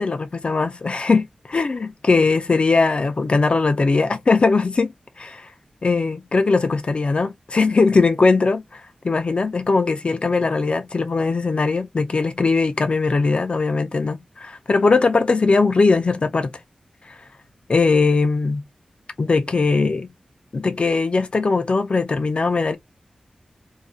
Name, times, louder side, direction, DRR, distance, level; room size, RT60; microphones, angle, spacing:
voice 1, 0.0-4.9 5.2-5.5 5.8-16.5 17.0-17.2 17.7-18.6 19.2-20.1 20.5-22.8, left 4 dB, 50° left, 0.3 m, -20 dB
2.3 x 2.1 x 2.5 m
wide cardioid pair, 75°, 2 cm